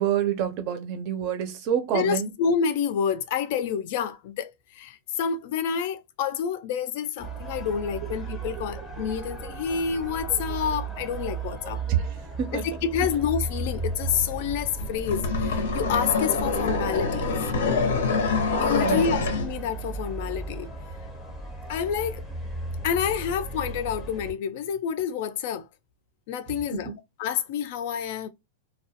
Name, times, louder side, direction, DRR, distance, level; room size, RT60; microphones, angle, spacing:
voice 1, 0.0-2.3 8.0-8.1 11.9-12.6 18.8-19.2 26.7-27.0, right 9 dB, 35° right, 0.5 m, -27 dB
voice 2, 1.9-11.8 12.6-17.4 18.6-20.7 21.7-22.2 22.8-25.7 26.3-26.9 27.2-28.3, left 7 dB, 45° left, 0.3 m, -28 dB
sound 1, 7.2-24.3, right 3 dB, 10° left, 0.7 m, -35 dB
sound 2, 14.8-19.5, left 4 dB, 85° left, 0.7 m, -25 dB
2.3 x 2.1 x 2.7 m
supercardioid pair, 175°, 0 cm